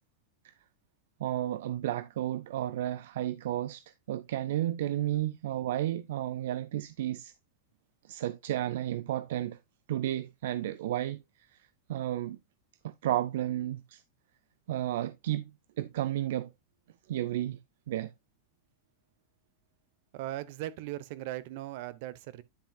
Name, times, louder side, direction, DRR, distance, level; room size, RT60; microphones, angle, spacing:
voice 1, 1.2-3.8 4.1-7.3 8.1-9.6 9.9-11.2 11.9-12.4 12.8-14.0 14.7-15.5 15.8-16.5 17.1-17.6 17.9-18.1, right 13 dB, 75° right, 0.4 m, -32 dB
voice 2, 20.1-22.4, right 15 dB, 55° right, 0.8 m, -38 dB
9.9 x 5.9 x 2.3 m
supercardioid pair, 150°, 0 cm